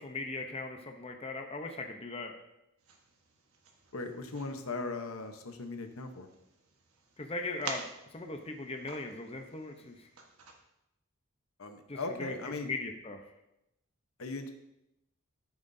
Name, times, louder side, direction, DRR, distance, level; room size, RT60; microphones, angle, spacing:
voice 1, 0.0-2.3 7.2-7.8 8.1-10.0 11.9-12.3 12.6-13.2, left 3 dB, 30° left, 4 dB, 0.8 m, -39 dB
sound 1, 2.8-10.6, right 4 dB, 90° right, 1.4 m, -49 dB
voice 2, 3.9-6.3 11.6-12.7 14.2-14.5, left 3 dB, 75° left, 6 dB, 1.0 m, -38 dB
13.5 x 7.2 x 2.7 m, 0.87 s
head